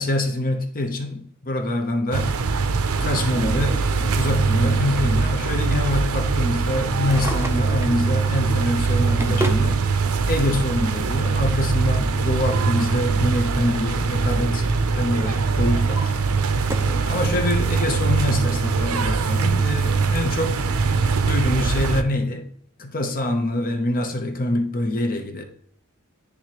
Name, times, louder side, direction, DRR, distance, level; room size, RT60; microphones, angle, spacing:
voice 1, 0.0-2.3 3.0-9.9 10.3-14.6 15.0-16.1 16.8-20.6 21.1-22.5 22.8-25.4, left 1 dB, 40° left, 0.7 m, -25 dB
sound 1, 2.1-22.0, right 4 dB, 80° right, 0.6 m, -22 dB
Drawer open or close, 6.9-8.0 8.7-9.7 10.8-10.9 12.6-14.2 14.5-14.9 15.4-17.0 17.5-17.6 18.3-18.4 18.6-18.7 19.4-19.5, right 1 dB, 10° right, 0.5 m, -34 dB
10.5 x 3.5 x 2.9 m
head